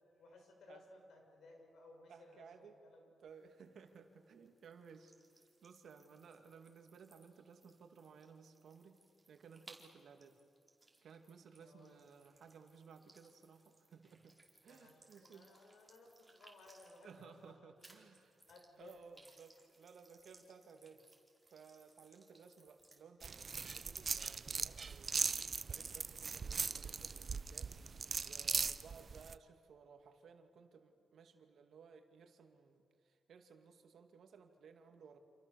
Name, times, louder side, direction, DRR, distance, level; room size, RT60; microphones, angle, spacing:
voice 1, 0.0-3.1 11.6-12.0 14.6-18.0 18.5-19.1, left 2 dB, 80° left, 2 dB, 6.6 m, -60 dB
voice 2, 2.1-2.8 3.2-9.0 9.3-10.4 11.0-14.4 14.6-15.5 17.0-18.4 18.8-21.0 21.5-25.3 25.7-27.8 28.2-35.2, right 6 dB, 75° right, 5 dB, 2.4 m, -59 dB
sound 1, 3.3-17.5 17.8-23.0, right 2 dB, 15° right, 4.8 m, -66 dB
sound 2, 23.2-29.4, right 5 dB, 45° right, 0.8 m, -39 dB
28.5 x 28.0 x 7.1 m, 2.4 s
cardioid pair, 80°, 0 cm